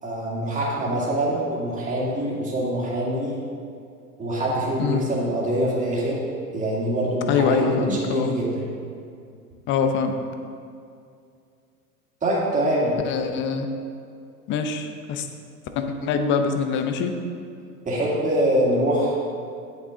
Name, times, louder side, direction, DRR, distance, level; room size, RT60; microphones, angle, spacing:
voice 1, 0.0-3.4 4.2-6.2 6.5-8.7 12.2-13.0 17.8-19.2, right 1 dB, 15° right, -5 dB, 2.2 m, -24 dB
voice 2, 7.3-8.3 9.7-10.1 13.0-13.7 14.5-15.3 15.8-17.1, left 6 dB, 25° left, 7 dB, 0.6 m, -24 dB
8.4 x 8.2 x 3.7 m, 2.3 s
hypercardioid pair, 105°, 47 cm